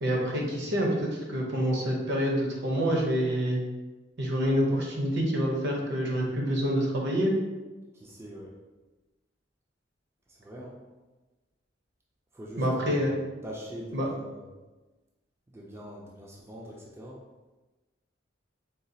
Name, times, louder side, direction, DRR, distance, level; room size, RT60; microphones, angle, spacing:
voice 1, 0.0-3.6 4.2-7.4 12.6-13.1 13.9-14.1, equal, 60° right, -1 dB, 0.7 m, -27 dB
voice 2, 7.9-8.5 10.3-10.8 12.3-14.5 15.5-17.2, equal, 15° right, -3 dB, 0.4 m, -43 dB
3.9 x 2.3 x 2.7 m, 1.2 s
head